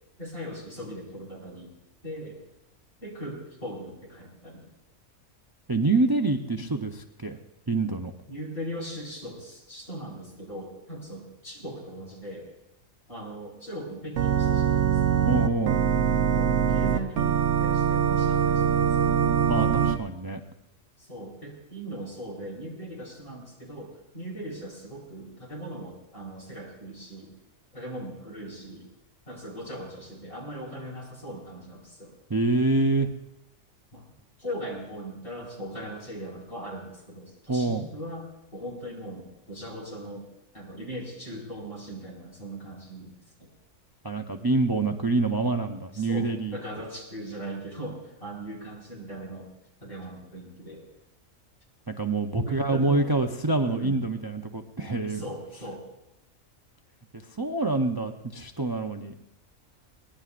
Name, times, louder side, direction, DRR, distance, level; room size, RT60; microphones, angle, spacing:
voice 1, 0.2-1.7 2.0-2.4 3.0-4.6 8.3-12.5 13.1-15.3 16.3-19.2 21.0-27.3 27.7-28.9 29.3-32.1 33.9-34.0 34.4-40.3 40.5-43.1 43.4-43.5 45.9-49.5 49.8-50.9 52.3-53.2 53.6-54.0 55.1-55.8, right 1 dB, 45° left, -4 dB, 5.1 m, -39 dB
voice 2, 5.7-7.4 7.7-8.1 15.3-15.8 19.5-20.4 32.3-33.1 37.5-37.8 44.0-46.6 51.9-55.2 57.1-59.1, right 3 dB, 30° right, 4 dB, 0.4 m, -26 dB
Organ, 14.2-20.0, right 8 dB, 70° right, 1.0 m, -23 dB
23.0 x 18.5 x 2.5 m, 0.90 s
omnidirectional pair, 1.4 m